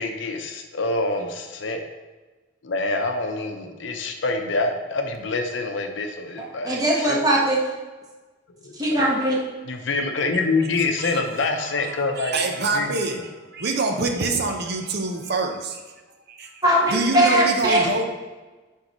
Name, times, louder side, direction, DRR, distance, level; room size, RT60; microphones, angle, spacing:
voice 1, 0.0-1.8 2.6-7.2 8.6-9.1 9.7-12.4 12.7-12.9, left 3 dB, 70° left, 4 dB, 0.7 m, -26 dB
voice 2, 6.4-7.6 8.7-9.4 16.6-18.1, right 1 dB, 20° right, -4 dB, 1.2 m, -20 dB
voice 3, 10.8-15.8 16.3-16.5 16.9-18.0, right 3 dB, 55° right, 3 dB, 0.7 m, -26 dB
9.3 x 3.7 x 3.0 m, 1.2 s
head